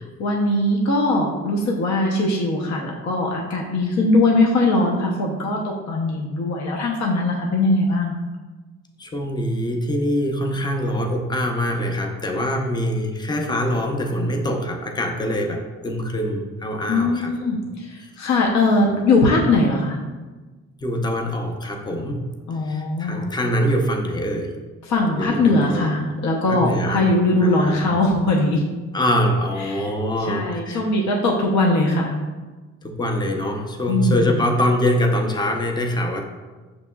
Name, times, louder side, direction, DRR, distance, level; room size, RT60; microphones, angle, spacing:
voice 1, 0.2-5.6 5.9-8.2 16.9-20.0 22.5-23.3 24.9-28.6 29.6-29.9 30.3-32.2 33.9-34.3, left 2 dB, 65° left, -1 dB, 0.7 m, -20 dB
voice 2, 9.0-17.7 18.8-19.1 20.8-22.2 22.6-24.6 25.2-25.9 26.5-27.1 27.4-27.8 28.9-30.9 32.8-36.3, equal, 15° left, 2 dB, 0.5 m, -24 dB
6.0 x 2.9 x 2.2 m, 1.3 s
cardioid pair, 90°, 30 cm